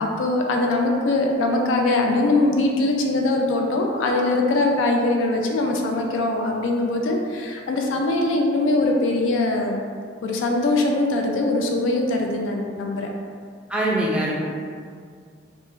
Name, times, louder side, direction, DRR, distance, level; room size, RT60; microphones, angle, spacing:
voice 1, 0.0-9.8 10.2-13.1, left 2 dB, 80° left, 1 dB, 0.3 m, -22 dB
voice 2, 13.7-14.3, right 1 dB, 5° right, -5 dB, 0.3 m, -22 dB
2.4 x 2.1 x 3.6 m, 2.1 s
head